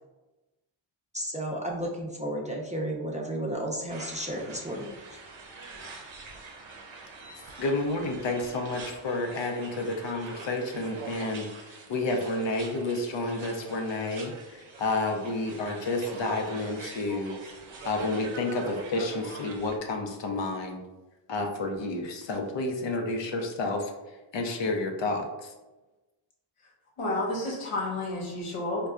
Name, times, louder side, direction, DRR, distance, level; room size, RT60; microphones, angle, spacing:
voice 1, 1.1-4.9, right 1 dB, 15° right, -2 dB, 0.4 m, -33 dB
sound 1, 3.9-19.8, right 3 dB, 65° right, 0.6 m, -44 dB
voice 2, 7.6-11.5 11.9-14.3 14.8-17.4 17.8-20.8 21.3-23.9 24.3-25.5, left 2 dB, 60° left, 3 dB, 0.6 m, -30 dB
voice 3, 27.0-28.9, left 2 dB, 80° left, -2 dB, 1.0 m, -30 dB
4.1 x 2.2 x 2.4 m, 1.1 s
cardioid pair, 60°, 50 cm